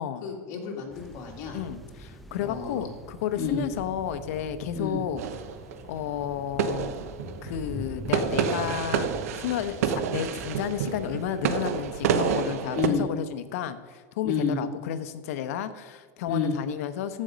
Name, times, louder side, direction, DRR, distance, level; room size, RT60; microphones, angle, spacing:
voice 1, 0.2-1.6 2.4-2.9 3.3-3.6 4.7-5.0 12.7-13.0 14.2-14.6 16.3-16.6, left 5 dB, 50° left, 0 dB, 2.4 m, -30 dB
sound 1, 0.9-12.4, equal, ahead, 0.7 m, -43 dB
voice 2, 1.5-5.2 5.9-6.9 7.4-9.1 9.3-17.2, left 9 dB, 80° left, 11 dB, 0.8 m, -32 dB
sound 2, 5.2-6.0 6.6-7.6 8.1-12.9, right 7 dB, 90° right, 0.8 m, -28 dB
14.0 x 5.3 x 5.1 m, 1.5 s
supercardioid pair, 145°, 8 cm